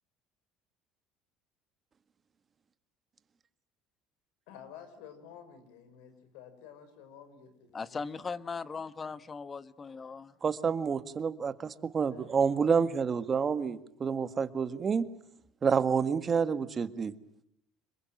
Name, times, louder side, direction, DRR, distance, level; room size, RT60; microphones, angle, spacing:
voice 1, 4.5-8.0 9.0-9.1 10.0-10.2 12.0-12.5, left 8 dB, 90° left, 5.8 m, -52 dB
voice 2, 7.7-10.3, left 5 dB, 25° left, 1.2 m, -39 dB
voice 3, 10.4-15.1 15.6-17.1, right 6 dB, 30° right, 1.7 m, -28 dB
27.0 x 22.5 x 9.3 m
cardioid pair, 120°, 0 cm